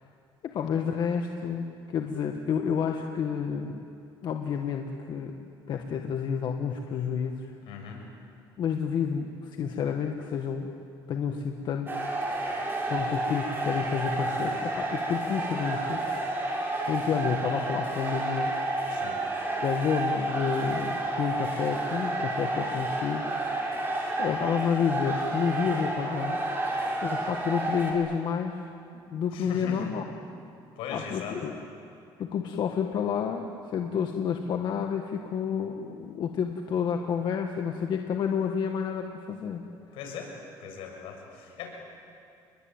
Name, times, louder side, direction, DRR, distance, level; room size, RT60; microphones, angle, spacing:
voice 1, 0.4-3.8 4.2-5.3 5.7-7.5 8.6-10.7 11.1-12.1 12.9-16.0 16.9-18.5 19.6-23.3 24.2-26.4 27.0-28.7 29.1-30.0 30.9-31.6 32.2-39.6, left 7 dB, 55° left, 4 dB, 1.7 m, -30 dB
voice 2, 7.6-8.0 18.9-19.2 29.3-29.9 30.8-31.4 39.9-40.3 40.6-41.7, left 6 dB, 85° left, 2 dB, 6.9 m, -39 dB
sound 1, 11.9-27.9, right 2 dB, 25° right, 6.3 m, -30 dB
29.5 x 21.5 x 9.0 m, 2.5 s
cardioid pair, 115°, 9 cm